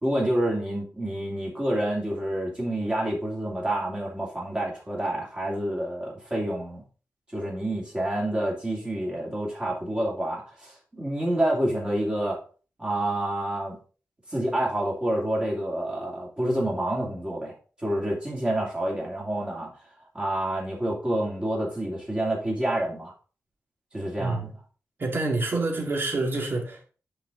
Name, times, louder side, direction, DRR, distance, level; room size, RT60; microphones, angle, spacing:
voice 1, 0.0-6.8 7.3-12.4 12.8-13.8 14.3-17.6 17.8-19.7 20.1-23.1 23.9-24.5, right 1 dB, 20° right, 2.6 m, -28 dB
voice 2, 24.2-24.5 25.0-26.8, right 2 dB, 45° right, 2.1 m, -27 dB
9.8 x 4.6 x 3.8 m
wide cardioid pair, 165°, 5 cm